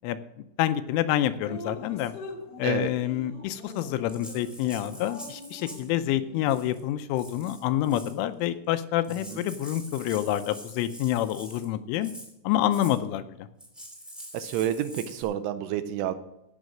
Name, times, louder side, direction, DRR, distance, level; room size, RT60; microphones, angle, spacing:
voice 1, 0.6-2.1 2.6-12.1 12.4-13.3, left 12 dB, 85° left, 11 dB, 3.0 m, -27 dB
Drip, 1.4-6.7, left 1 dB, 55° left, 1.7 m, -43 dB
Rattle (instrument), 3.6-5.9 6.4-6.8 7.1-8.2 8.7-8.8 9.0-11.7 12.0-12.3 12.7-13.0 13.6-15.2, equal, ahead, 0.8 m, -45 dB
voice 2, 14.3-16.2, right 10 dB, 85° right, 11 dB, 3.0 m, -29 dB
15.5 x 6.3 x 6.2 m, 0.84 s
omnidirectional pair, 5.8 m